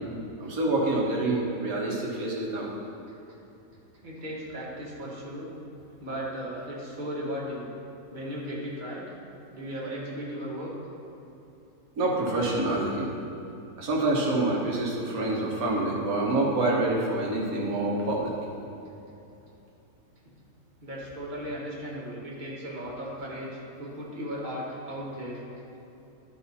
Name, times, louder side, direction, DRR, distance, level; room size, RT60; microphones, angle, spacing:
voice 1, 0.4-2.7 12.0-13.1 13.8-18.3, right 2 dB, 70° right, -2 dB, 1.7 m, -26 dB
voice 2, 4.0-5.5 6.0-7.7 8.1-9.0 9.5-10.7 20.8-25.4, equal, 30° right, -5 dB, 1.7 m, -36 dB
11.5 x 5.4 x 4.2 m, 2.9 s
omnidirectional pair, 1.6 m